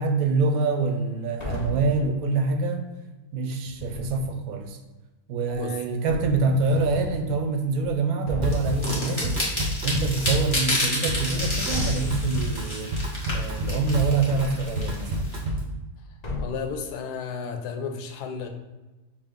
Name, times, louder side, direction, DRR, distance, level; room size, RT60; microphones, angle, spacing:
voice 1, 0.0-2.8 3.3-4.8 5.3-9.4 9.8-12.9 13.3-15.3, right 3 dB, 70° right, 6 dB, 1.0 m, -25 dB
sound 1, 1.4-2.0 3.6-4.3 5.5-5.6 6.1-7.3 7.8-7.9 8.3-8.7 10.3-11.0 11.3-12.4 14.3-15.2 16.2-16.8, left 1 dB, 45° left, 0.5 m, -34 dB
Drum kit / Drum, 8.4-15.7, equal, 45° right, 0.7 m, -29 dB
sound 2, 8.5-15.4, left 1 dB, 20° left, 1.2 m, -30 dB
voice 2, 16.4-18.5, left 6 dB, 85° left, 5 dB, 1.2 m, -33 dB
6.2 x 2.2 x 3.6 m, 1.1 s
omnidirectional pair, 1.7 m